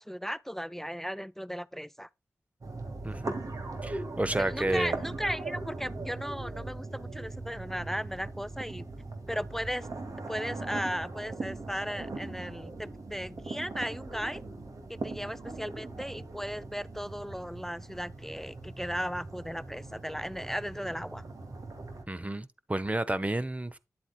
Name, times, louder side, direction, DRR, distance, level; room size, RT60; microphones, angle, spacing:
voice 1, 0.0-2.1 4.4-8.8 9.3-9.9 10.3-14.4 14.9-21.2, equal, 5° left, 0.4 m, -36 dB
sound 1, 2.6-22.0, right 2 dB, 70° right, 2.2 m, -40 dB
voice 2, 3.0-3.4 3.8-4.9 22.1-23.8, right 1 dB, 20° right, 0.9 m, -31 dB
9.6 x 8.1 x 2.3 m
cardioid pair, 45°, 6 cm